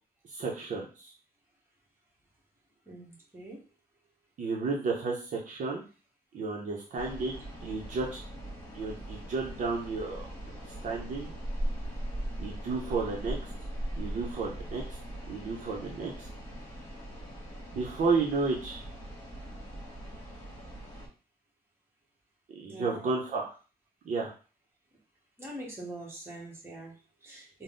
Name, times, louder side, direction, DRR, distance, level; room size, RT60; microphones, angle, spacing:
voice 1, 0.3-1.1 4.4-5.8 6.3-7.3 7.6-8.2 8.7-11.3 12.4-13.4 13.9-15.0 15.3-16.3 17.7-18.9 22.5-23.5 24.0-24.3, right 4 dB, 55° right, -2 dB, 0.7 m, -32 dB
voice 2, 2.8-3.6 22.7-23.1 25.4-27.6, right 1 dB, 15° right, -4 dB, 1.2 m, -44 dB
sound 1, 7.0-21.1, right 1 dB, 15° left, 1.7 m, -40 dB
3.9 x 2.0 x 3.7 m, 0.35 s
wide cardioid pair, 165°, 16 cm